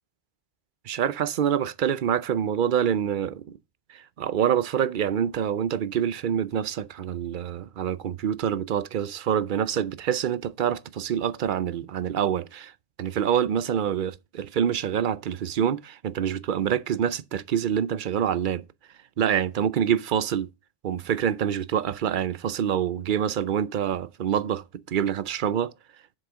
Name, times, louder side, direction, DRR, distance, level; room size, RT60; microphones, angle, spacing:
voice 1, 0.9-3.6 3.9-12.7 13.0-18.6 19.2-20.5 20.8-25.7, right 9 dB, 55° right, 0.7 m, -26 dB
7.8 x 6.5 x 4.8 m
omnidirectional pair, 1.0 m